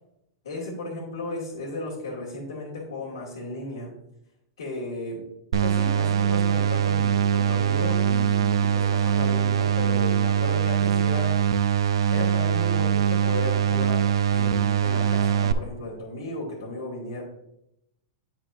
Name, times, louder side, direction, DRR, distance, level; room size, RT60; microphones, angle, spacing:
voice 1, 0.4-4.0 4.6-5.3 5.6-11.4 12.1-17.2, left 2 dB, 80° left, -7 dB, 2.1 m, -35 dB
sound 1, 5.5-15.5, right 8 dB, 80° right, 0.4 m, -22 dB
8.4 x 6.1 x 2.6 m, 0.80 s
hypercardioid pair, 110°, 2 cm